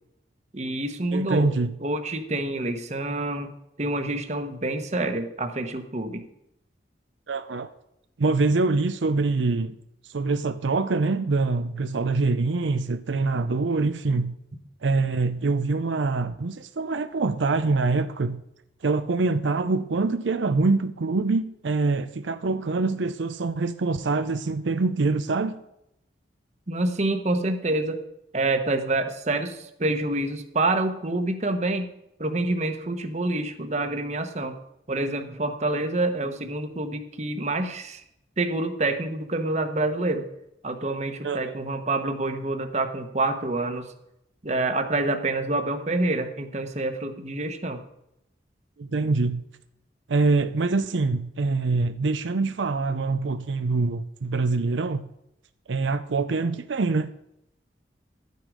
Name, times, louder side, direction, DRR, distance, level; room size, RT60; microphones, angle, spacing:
voice 1, 0.5-1.5 1.8-3.5 3.8-6.2 26.7-28.0 28.3-31.9 32.2-34.6 34.9-38.0 38.4-40.3 40.6-43.9 44.4-47.8, right 2 dB, 40° right, 1.1 m, -27 dB
voice 2, 1.1-1.7 7.3-7.7 8.2-9.8 10.1-14.4 14.8-18.4 18.8-25.6 41.2-41.5 48.8-49.4 50.1-55.1 55.7-57.1, right 3 dB, 85° right, 0.6 m, -24 dB
13.0 x 9.3 x 5.0 m
head